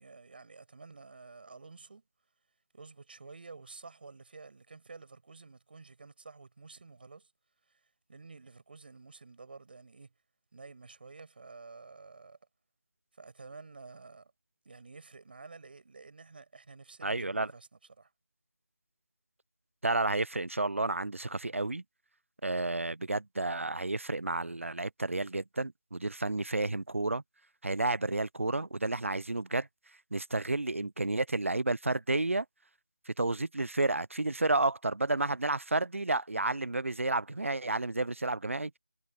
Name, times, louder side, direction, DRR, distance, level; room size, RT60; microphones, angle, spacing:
voice 1, 0.0-2.0 2.7-7.3 8.1-10.1 10.5-12.4 13.2-14.3 14.6-17.7 18.0-18.1, right 4 dB, 50° right, 5.9 m, -50 dB
voice 2, 17.0-17.5 19.8-21.8 22.4-27.2 27.6-29.7 30.1-32.4 33.1-38.7, right 2 dB, 80° right, 0.6 m, -31 dB
figure-of-eight pair, 160°, 7 cm